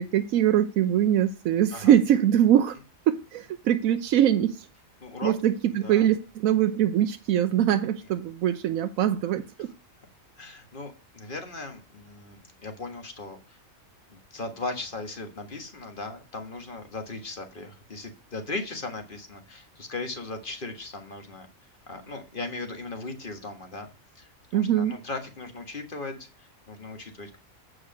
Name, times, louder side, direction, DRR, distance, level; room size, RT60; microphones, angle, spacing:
voice 1, 0.0-2.8 3.1-4.7 5.2-9.7 24.5-25.0, right 10 dB, 85° right, 1.1 m, -23 dB
voice 2, 5.0-5.3 5.8-6.1 10.4-12.4 12.6-13.6 14.1-21.5 21.9-23.9 24.1-27.4, left 3 dB, 40° left, 1.7 m, -37 dB
8.7 x 4.9 x 6.3 m
omnidirectional pair, 1.4 m